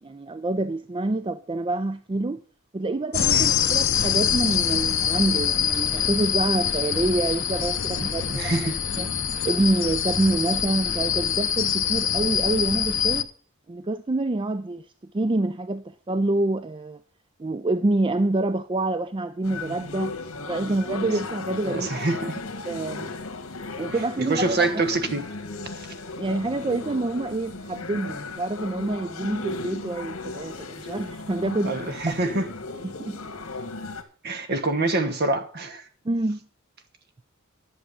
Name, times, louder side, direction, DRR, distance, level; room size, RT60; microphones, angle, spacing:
voice 1, 0.0-2.4 2.7-8.6 9.0-9.1 9.4-13.3 13.7-17.0 17.4-22.1 22.6-23.1 23.8-24.8 26.2-31.7 32.0-32.1 32.8-33.2 36.0-36.5, right 2 dB, 25° right, 0.4 m, -27 dB
sound 1, 3.1-13.2, left 8 dB, 65° left, 0.8 m, -24 dB
voice 2, 8.0-8.7 20.6-20.7 21.6-22.5 24.2-25.2 25.7-25.9 31.6-32.5 34.2-35.9, right 2 dB, 50° right, 1.3 m, -26 dB
sound 2, 19.4-34.0, left 3 dB, 80° left, 1.7 m, -36 dB
11.0 x 7.3 x 6.8 m
head